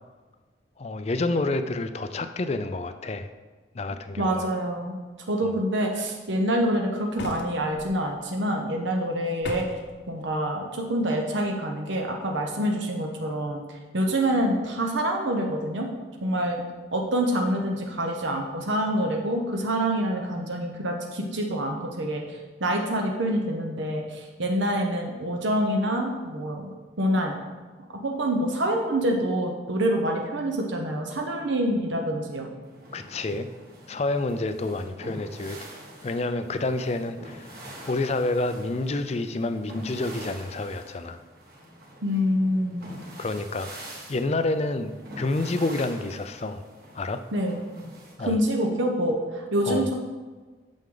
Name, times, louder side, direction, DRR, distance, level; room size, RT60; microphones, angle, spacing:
voice 1, 0.8-3.3 3.7-4.5 32.9-33.5 33.9-35.6 36.0-37.5 37.8-41.2 43.2-46.6 46.9-47.2 48.2-48.4 49.6-49.9, left 2 dB, 30° left, 10 dB, 0.4 m, -28 dB
voice 2, 4.2-5.0 5.3-9.6 10.1-13.6 13.9-15.9 16.2-16.6 16.9-26.7 27.0-27.4 28.0-32.5 42.0-42.9 47.3-47.6 48.2-49.9, equal, 70° right, 1 dB, 0.9 m, -26 dB
sound 1, 7.2-7.9 9.4-9.9, left 2 dB, 65° left, 0.9 m, -36 dB
sound 2, 32.6-48.1, right 1 dB, 50° right, 1.8 m, -45 dB
8.9 x 6.3 x 3.8 m, 1.4 s
head